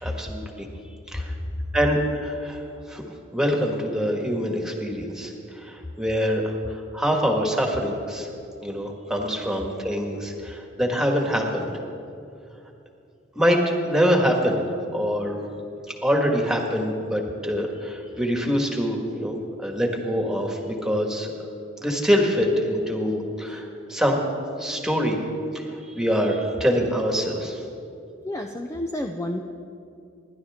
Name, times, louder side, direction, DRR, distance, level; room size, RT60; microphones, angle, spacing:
voice 1, 0.0-0.7 1.1-1.3 1.7-2.6 2.9-3.0 3.3-8.3 8.6-11.7 13.4-14.6 14.9-15.4 16.0-21.3 21.8-24.2 24.6-25.2 25.5-27.6, equal, 5° right, 1 dB, 1.8 m, -24 dB
voice 2, 28.2-29.4, left 1 dB, 15° left, 3 dB, 0.5 m, -30 dB
27.5 x 11.5 x 3.7 m, 2.5 s
head